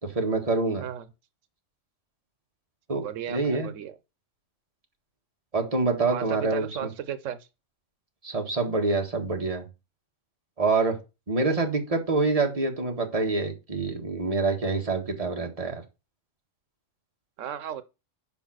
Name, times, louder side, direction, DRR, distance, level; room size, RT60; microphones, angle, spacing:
voice 1, 0.0-0.8 2.9-3.7 5.5-6.9 8.2-9.6 10.6-11.0 11.3-15.8, right 3 dB, 30° right, 1.7 m, -26 dB
voice 2, 3.0-3.9 6.1-7.5 17.4-17.8, right 9 dB, 90° right, 1.1 m, -34 dB
7.1 x 5.2 x 6.2 m
omnidirectional pair, 1.3 m